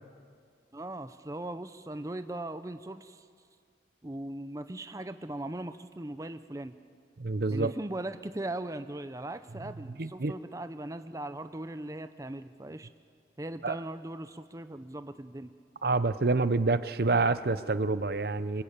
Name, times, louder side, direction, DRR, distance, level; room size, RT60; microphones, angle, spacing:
voice 1, 0.7-3.2 4.0-6.7 7.5-12.9 13.4-15.5, right 1 dB, 20° right, 10 dB, 0.6 m, -39 dB
voice 2, 7.2-7.7 10.0-10.3 13.6-13.7 15.8-18.6, right 3 dB, 60° right, 14 dB, 0.7 m, -27 dB
25.5 x 22.0 x 8.8 m, 2.1 s
head